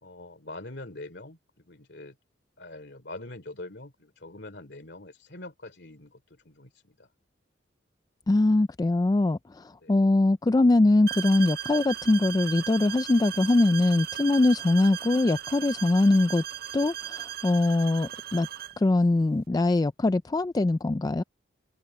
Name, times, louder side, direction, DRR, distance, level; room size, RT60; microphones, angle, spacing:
voice 1, 0.0-2.2 2.6-7.1 9.8-10.0, left 2 dB, 60° left, 3.1 m, -44 dB
voice 2, 8.3-16.4 16.7-18.5 18.8-21.2, left 2 dB, 20° left, 0.3 m, -22 dB
sound 1, 11.1-18.8, right 11 dB, 55° right, 0.7 m, -37 dB
open air
head